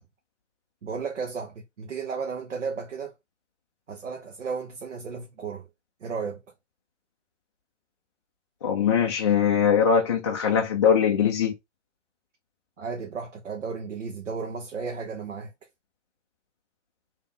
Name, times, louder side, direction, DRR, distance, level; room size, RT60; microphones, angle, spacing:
voice 1, 0.8-3.2 3.9-5.7 6.0-6.4 12.8-15.5, right 5 dB, 75° right, 1.0 m, -34 dB
voice 2, 8.6-11.5, left 7 dB, 25° left, 0.4 m, -21 dB
3.3 x 2.8 x 4.0 m
figure-of-eight pair, 130°, 36 cm